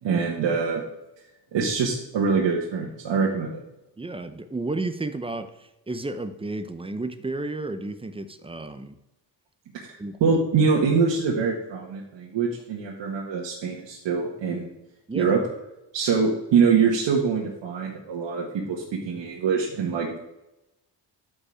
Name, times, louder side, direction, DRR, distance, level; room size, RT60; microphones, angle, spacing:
voice 1, 0.0-0.8 1.5-3.6 9.8-9.9 10.2-14.7 15.1-15.4 15.9-20.2, right 5 dB, 85° right, -2 dB, 1.7 m, -24 dB
voice 2, 4.0-9.0 10.0-10.2 15.1-15.4, right 2 dB, 15° right, 10 dB, 0.6 m, -32 dB
13.0 x 5.3 x 4.9 m, 0.93 s
wide cardioid pair, 170°, 43 cm